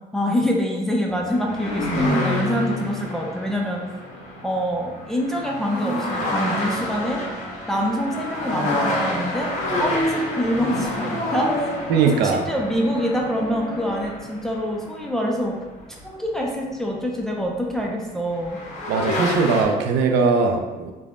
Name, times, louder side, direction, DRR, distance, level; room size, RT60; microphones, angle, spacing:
voice 1, 0.1-3.8 4.4-7.2 7.7-9.5 9.8-11.7 12.1-15.5 15.9-18.6, equal, ahead, -1 dB, 0.4 m, -25 dB
sound 1, 1.1-16.5 17.8-17.9 18.3-19.6, left 1 dB, 45° left, 0.8 m, -28 dB
voice 2, 11.9-12.5 18.9-20.9, right 5 dB, 85° right, 4 dB, 0.4 m, -20 dB
3.3 x 2.1 x 2.4 m, 1.2 s
cardioid pair, 110°, 17 cm